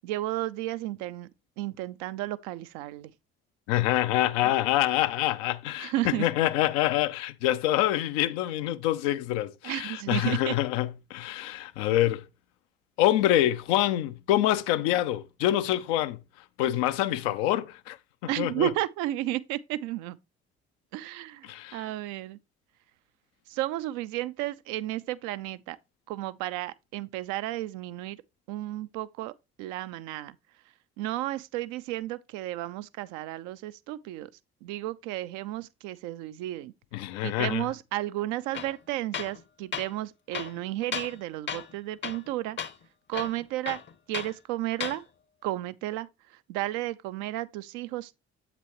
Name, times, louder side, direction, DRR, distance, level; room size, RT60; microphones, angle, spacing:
voice 1, 0.0-1.3 1.6-3.1 4.4-4.5 5.8-6.3 9.6-10.5 18.3-20.2 20.9-22.4 23.5-25.8 26.1-28.2 28.5-29.3 29.6-30.4 31.0-34.3 34.6-36.7 37.2-42.6 43.1-43.8 44.1-45.0 45.4-46.1 46.5-48.2, right 15 dB, 70° right, 0.5 m, -33 dB
voice 2, 3.7-12.2 13.0-16.2 16.6-18.0 18.4-18.7 21.4-21.8 36.9-37.6, left 13 dB, 75° left, 0.5 m, -26 dB
Tools, 38.5-38.8 39.1-39.4 39.7-39.9 40.3-41.2 41.5-41.7 42.0-42.3 42.6-42.7 43.1-44.3 44.7-45.0, left 7 dB, 35° left, 0.7 m, -35 dB
7.5 x 5.9 x 2.9 m
hypercardioid pair, 45°, 31 cm